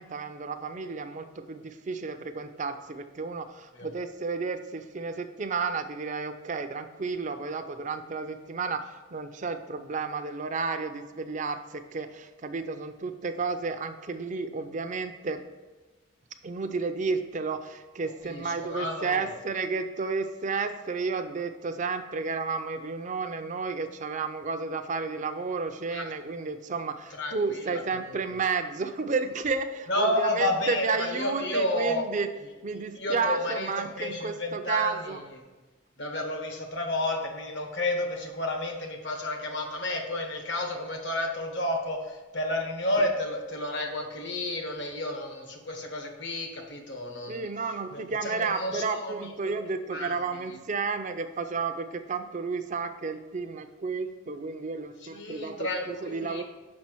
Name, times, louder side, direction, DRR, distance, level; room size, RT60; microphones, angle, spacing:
voice 1, 0.0-15.4 16.4-32.3 32.6-35.2 47.3-56.4, right 4 dB, 35° right, 7 dB, 0.4 m, -32 dB
voice 2, 18.2-19.3 25.9-26.1 27.1-27.8 29.9-32.0 32.7-35.2 36.0-47.5 47.9-49.3 49.9-50.1 55.0-56.4, left 1 dB, 60° left, 3 dB, 1.1 m, -31 dB
6.0 x 4.3 x 6.0 m, 1.2 s
head